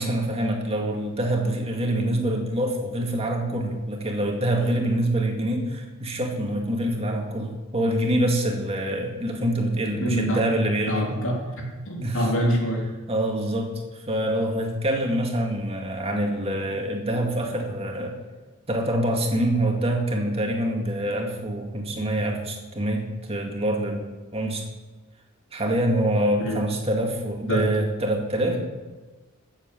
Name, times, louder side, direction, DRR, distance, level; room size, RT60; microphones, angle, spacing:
voice 1, 0.0-11.0 12.0-12.3 13.1-13.7 14.1-18.3 18.7-24.7 25.5-28.6, right 1 dB, 30° right, 1 dB, 2.1 m, -25 dB
voice 2, 10.0-10.4 10.9-12.9 26.4-26.6 27.5-27.7 28.4-28.6, equal, 65° left, -1 dB, 3.2 m, -26 dB
13.0 x 7.6 x 7.5 m, 1.3 s
head